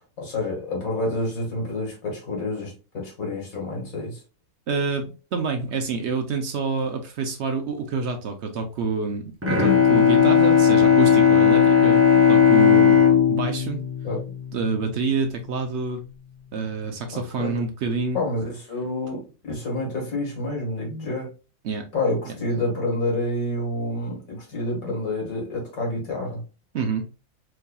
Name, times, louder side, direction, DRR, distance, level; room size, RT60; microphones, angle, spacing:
voice 1, 0.2-4.2 14.0-14.2 17.1-17.5 18.1-21.3 21.9-26.4, left 2 dB, 75° left, -1 dB, 2.0 m, -28 dB
voice 2, 4.7-12.0 12.3-13.0 13.3-13.8 14.5-16.0 16.5-18.2 21.6-21.8 22.3-22.4 26.7-27.1, right 4 dB, 65° right, 5 dB, 0.8 m, -27 dB
Bowed string instrument, 9.4-15.0, left 7 dB, 15° right, 0.5 m, -17 dB
4.6 x 2.7 x 2.2 m, 0.33 s
omnidirectional pair, 1.4 m